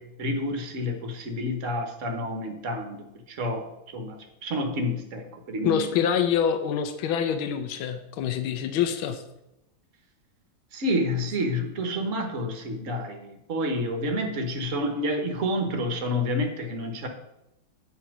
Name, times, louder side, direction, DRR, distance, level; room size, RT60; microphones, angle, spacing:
voice 1, 0.0-5.9 10.7-17.1, left 1 dB, 45° right, 5 dB, 1.3 m, -29 dB
voice 2, 5.6-9.2, left 8 dB, 80° left, 9 dB, 1.5 m, -26 dB
9.0 x 4.7 x 6.0 m, 0.87 s
omnidirectional pair, 2.2 m